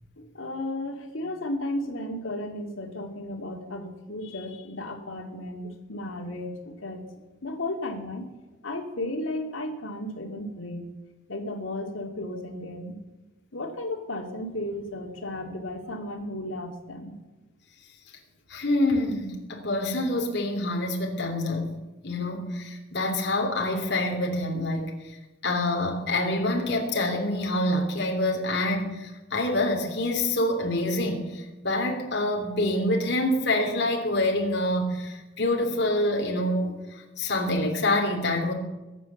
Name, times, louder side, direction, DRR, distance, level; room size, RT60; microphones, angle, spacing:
voice 1, 0.2-7.0 7.4-8.3 8.6-10.8 11.3-12.9 13.5-17.2, left 1 dB, 85° left, 3 dB, 2.5 m, -34 dB
voice 2, 18.5-21.7 22.0-25.2 25.4-38.5, left 1 dB, 55° left, 1 dB, 3.1 m, -26 dB
22.0 x 8.6 x 7.2 m, 1.1 s
head